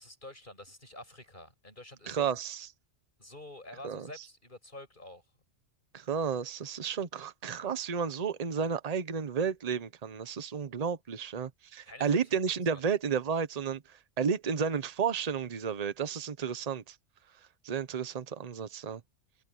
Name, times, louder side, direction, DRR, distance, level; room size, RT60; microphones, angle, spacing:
voice 1, 0.0-2.3 3.2-5.2 11.8-12.2 12.7-12.8, left 1 dB, 40° left, 8.1 m, -48 dB
voice 2, 2.1-2.7 3.8-4.1 5.9-17.0 17.6-19.0, right 6 dB, 35° right, 0.9 m, -32 dB
omnidirectional pair, 1.3 m